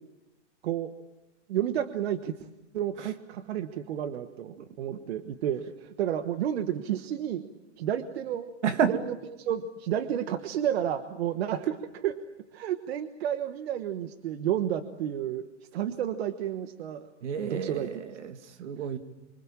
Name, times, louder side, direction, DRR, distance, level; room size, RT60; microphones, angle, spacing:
voice 1, 1.5-2.4 2.7-7.5 7.8-8.5 8.8-12.2 12.5-15.5 15.7-17.1 17.5-18.0, right 10 dB, 60° right, 10 dB, 1.3 m, -31 dB
voice 2, 4.6-5.1 8.6-8.9 17.2-19.0, right 7 dB, 80° right, 8 dB, 2.5 m, -31 dB
26.0 x 24.5 x 7.3 m, 1.0 s
hypercardioid pair, 160°, 35 cm